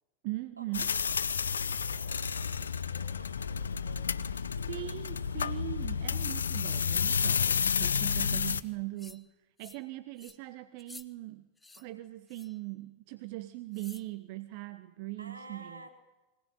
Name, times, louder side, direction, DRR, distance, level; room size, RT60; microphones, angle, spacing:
voice 1, 0.2-0.9 4.7-11.5 11.7-15.9, right 18 dB, 45° right, 12 dB, 1.1 m, -40 dB
sound 1, 0.7-8.6, left 6 dB, 70° left, 0.8 m, -31 dB
voice 2, 1.4-4.8 15.2-15.9, right 2 dB, 80° right, 1 dB, 4.5 m, -52 dB
sound 2, 9.0-9.3 9.6-9.9 10.2-10.4 10.8-11.1 11.6-11.8 12.3-12.6 13.7-14.1, left 3 dB, 10° left, 1.2 m, -52 dB
23.5 x 18.5 x 9.4 m, 1.1 s
figure-of-eight pair, 90°, 0 cm